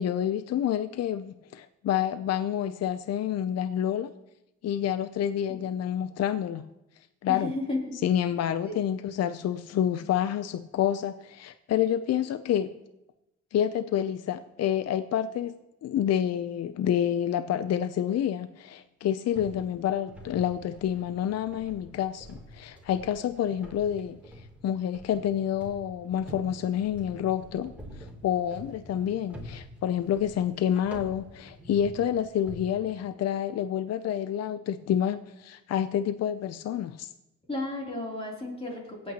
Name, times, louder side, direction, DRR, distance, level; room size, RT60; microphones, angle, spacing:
voice 1, 0.0-4.1 4.6-6.7 7.2-7.5 8.0-12.7 13.5-15.5 15.8-37.1, left 10 dB, 55° left, 12 dB, 0.6 m, -28 dB
voice 2, 7.3-7.9 8.6-8.8 37.5-39.1, left 2 dB, 20° left, -2 dB, 3.2 m, -33 dB
sound 1, 19.4-32.6, right 1 dB, 5° right, 3.0 m, -47 dB
24.0 x 8.7 x 3.0 m, 0.90 s
cardioid pair, 90°, 30 cm